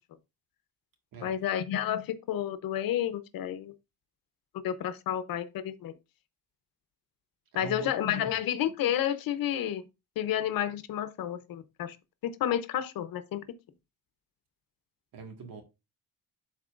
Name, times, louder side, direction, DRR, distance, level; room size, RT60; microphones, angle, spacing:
voice 1, 1.2-3.7 4.5-6.0 7.5-9.8 10.2-12.0 12.2-13.4, left 10 dB, 90° left, 0.9 m, -31 dB
voice 2, 7.6-8.4 15.1-15.6, right 4 dB, 80° right, 1.9 m, -42 dB
11.5 x 4.1 x 2.5 m
cardioid pair, 135°, 34 cm